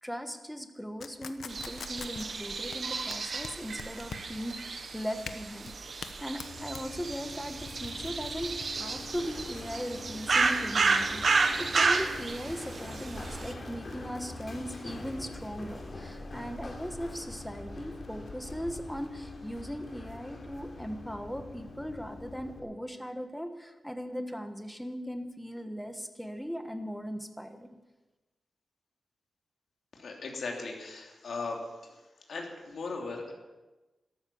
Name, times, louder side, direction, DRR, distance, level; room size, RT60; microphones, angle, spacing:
voice 1, 0.0-27.7, equal, ahead, 7 dB, 1.3 m, -39 dB
sound 1, 1.0-20.6, left 6 dB, 85° left, 1.0 m, -48 dB
sound 2, 1.5-13.5, right 4 dB, 55° right, 1.2 m, -31 dB
Run, 6.5-22.6, left 2 dB, 45° left, 3.3 m, -44 dB
voice 2, 30.0-31.9 32.3-33.3, left 3 dB, 70° left, 0 dB, 3.1 m, -38 dB
13.5 x 13.0 x 7.2 m, 1.1 s
wide cardioid pair, 130°, 0 cm